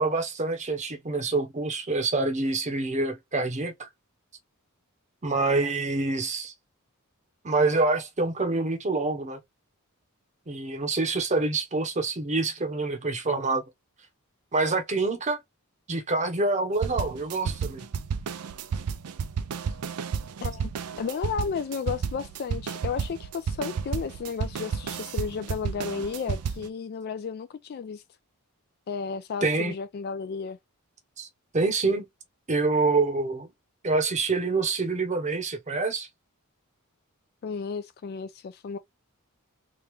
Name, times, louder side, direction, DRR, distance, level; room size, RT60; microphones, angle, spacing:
voice 1, 0.0-3.9 5.2-6.5 7.4-9.4 10.5-13.6 14.5-15.4 15.9-17.8 29.4-29.7 31.2-31.3 31.5-32.0 32.5-33.5 33.8-36.1, right 3 dB, 30° right, 0.8 m, -26 dB
sound 1, 16.8-26.7, right 6 dB, 90° right, 0.5 m, -32 dB
voice 2, 20.4-20.7 21.0-28.0 28.9-30.6 37.4-38.8, left 6 dB, 45° left, 0.3 m, -33 dB
3.1 x 2.3 x 3.2 m
head